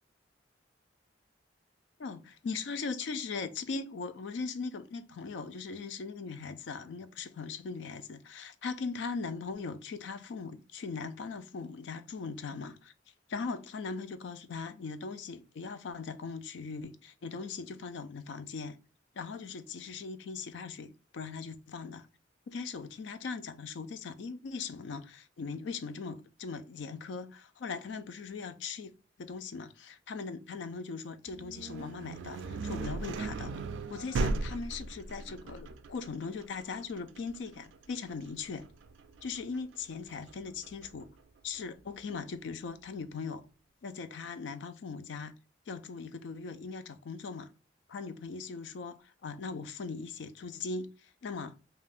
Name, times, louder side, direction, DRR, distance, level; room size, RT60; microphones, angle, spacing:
voice 1, 2.0-12.9 13.3-18.8 19.1-22.1 22.5-28.9 29.2-33.5 33.9-38.7 39.2-41.1 41.4-43.4 43.8-45.3 45.7-47.5 47.9-51.6, left 4 dB, 75° left, 0.4 m, -39 dB
sound 1, 31.3-41.0, right 3 dB, 90° right, 0.3 m, -38 dB
2.5 x 2.2 x 3.3 m
head